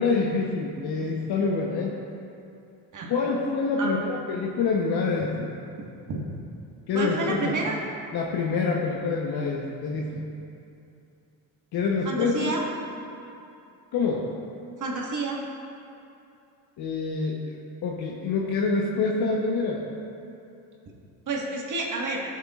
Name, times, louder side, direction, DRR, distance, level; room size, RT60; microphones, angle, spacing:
voice 1, 0.0-1.9 3.1-5.5 6.9-7.6 8.1-10.2 11.7-12.6 13.9-14.3 16.8-19.8, left 4 dB, 60° left, -2 dB, 1.1 m, -26 dB
voice 2, 2.9-3.3 3.8-3.9 5.8-6.2 6.9-7.8 12.1-12.6 14.8-15.4 21.3-22.2, right 3 dB, 45° right, -2 dB, 1.7 m, -30 dB
13.5 x 7.2 x 2.5 m, 2.7 s
supercardioid pair, 85°, 43 cm